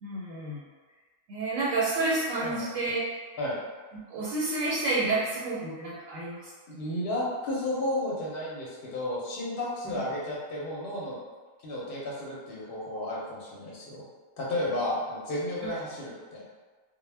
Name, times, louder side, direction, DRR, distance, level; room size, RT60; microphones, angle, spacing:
voice 1, 0.0-0.6 1.3-3.0 4.1-6.5 9.9-10.0 15.6-15.7, right 2 dB, 85° right, -7 dB, 1.0 m, -29 dB
voice 2, 6.7-11.2 11.6-14.0 14.4-16.5, left 1 dB, 60° left, -5 dB, 0.7 m, -32 dB
2.1 x 2.0 x 3.2 m, 1.4 s
omnidirectional pair, 1.3 m